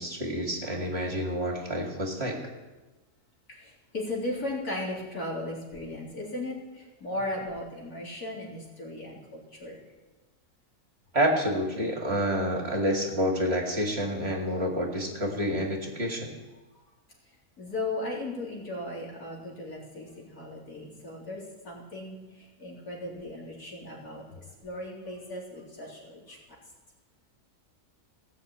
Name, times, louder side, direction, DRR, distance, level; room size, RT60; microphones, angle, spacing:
voice 1, 0.0-2.4 11.1-16.3, equal, 40° right, 1 dB, 2.3 m, -28 dB
voice 2, 3.5-9.8 17.6-26.6, left 1 dB, 70° left, -4 dB, 4.1 m, -37 dB
17.5 x 6.5 x 8.6 m, 1.2 s
omnidirectional pair, 1.6 m